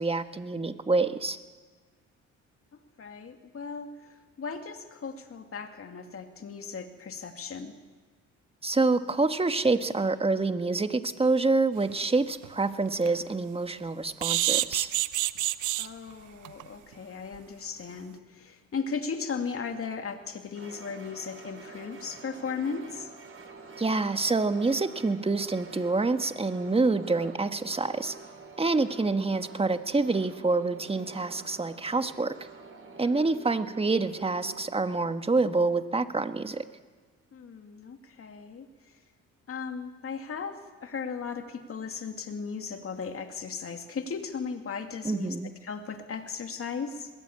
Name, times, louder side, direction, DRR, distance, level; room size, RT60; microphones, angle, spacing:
voice 1, 0.0-1.4 8.6-14.9 23.8-28.2 28.6-32.4 33.0-36.7 45.0-45.5, right 3 dB, 20° right, 9 dB, 1.5 m, -27 dB
voice 2, 3.0-7.7 15.8-23.1 28.6-28.9 33.0-33.3 37.3-38.9 39.5-45.4 45.6-47.1, left 5 dB, 50° left, 5 dB, 2.6 m, -37 dB
sound 1, 11.9-12.0 12.4-12.5 12.9-13.1 14.2-15.9 16.4-16.6 16.9-17.0 17.3-17.4, right 14 dB, 80° right, 0.8 m, -27 dB
sound 2, 20.5-35.0, right 4 dB, 45° right, 3.9 m, -48 dB
21.5 x 19.0 x 8.8 m, 1.4 s
cardioid pair, 90°, 30 cm